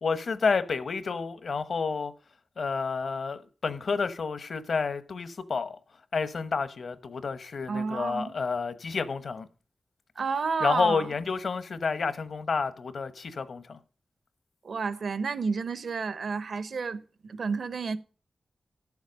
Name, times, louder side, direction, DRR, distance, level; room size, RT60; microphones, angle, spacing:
voice 1, 0.0-2.1 2.6-5.8 6.1-9.5 10.6-13.8, left 5 dB, 75° left, 1.0 m, -30 dB
voice 2, 7.7-8.3 10.2-11.1 14.6-18.0, right 5 dB, 75° right, 0.9 m, -31 dB
13.5 x 7.2 x 5.2 m
wide cardioid pair, 90°, 0 cm